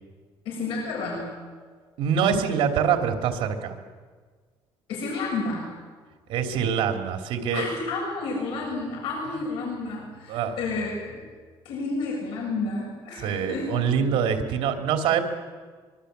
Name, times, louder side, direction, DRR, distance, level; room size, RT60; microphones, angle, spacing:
voice 1, 0.5-1.3 4.9-5.7 7.5-11.2 11.7-13.7 14.0-14.1, left 3 dB, 80° left, -1 dB, 7.0 m, -31 dB
voice 2, 2.0-3.8 6.3-7.7 10.3-10.6 13.2-15.2, right 7 dB, 80° right, 4 dB, 3.0 m, -24 dB
25.0 x 23.0 x 8.1 m, 1.5 s
cardioid pair, 160°, 9 cm